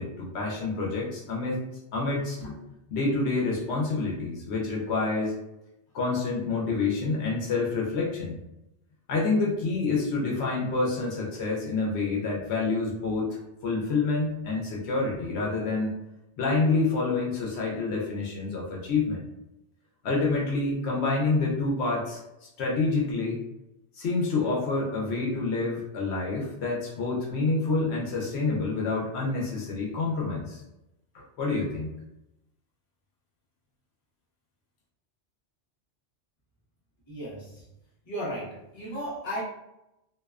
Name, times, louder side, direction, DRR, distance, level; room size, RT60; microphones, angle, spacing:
voice 1, 0.0-1.6 1.9-2.6 2.9-5.3 5.9-8.4 9.1-15.9 16.4-19.2 20.0-22.2 22.6-23.4 23.9-30.6 31.1-31.9, left 3 dB, 70° left, -3 dB, 0.9 m, -28 dB
voice 2, 37.1-37.6 38.1-39.4, equal, 30° left, -7 dB, 0.7 m, -35 dB
2.6 x 2.1 x 2.3 m, 0.88 s
omnidirectional pair, 1.2 m